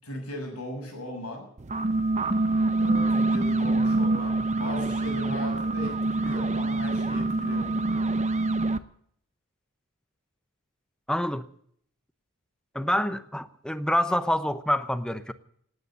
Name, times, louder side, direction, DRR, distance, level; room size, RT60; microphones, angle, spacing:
voice 1, 0.0-1.5 2.8-7.9, left 1 dB, 80° left, 6.6 m, -38 dB
sound 1, 1.6-8.8, right 2 dB, 30° right, 0.7 m, -25 dB
voice 2, 11.1-11.5 12.7-15.3, left 1 dB, 5° left, 0.8 m, -27 dB
18.0 x 9.6 x 8.3 m
head